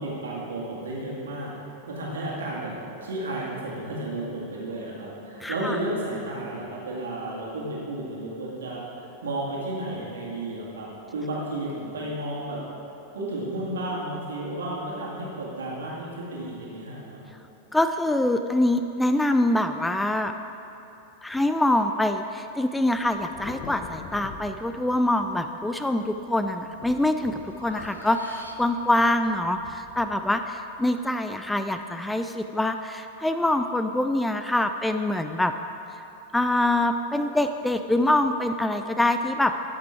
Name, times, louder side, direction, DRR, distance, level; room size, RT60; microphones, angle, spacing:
voice 1, 0.0-1.5 1.9-2.7 3.0-10.9 11.1-12.6 13.1-17.2, right 1 dB, 65° right, -4 dB, 2.1 m, -32 dB
voice 2, 5.4-5.8 17.7-20.3 21.2-35.5 36.3-39.6, left 1 dB, 5° left, 8 dB, 0.3 m, -25 dB
Thunder, 22.9-26.0 26.4-31.8, left 6 dB, 35° left, 0.8 m, -46 dB
Breathing, 25.7-26.2 26.7-29.0, equal, 85° left, 0.7 m, -46 dB
13.5 x 5.9 x 4.6 m, 2.9 s
figure-of-eight pair, 90°, 0 cm